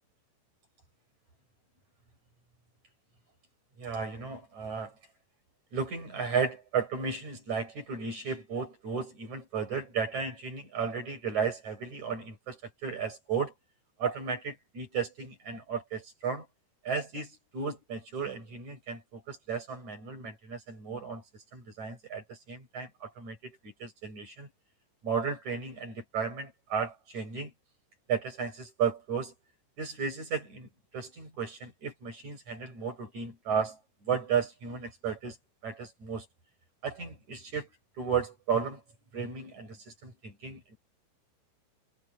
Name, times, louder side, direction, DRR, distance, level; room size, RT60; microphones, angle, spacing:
voice 1, 3.8-4.9 5.7-13.5 14.0-16.5 16.8-24.5 25.0-27.5 28.1-29.3 29.8-30.7 30.9-35.4 35.6-36.3 36.8-37.7 38.0-38.8 39.1-40.8, right 6 dB, 40° right, 7.2 m, -34 dB
omnidirectional pair, 5.3 m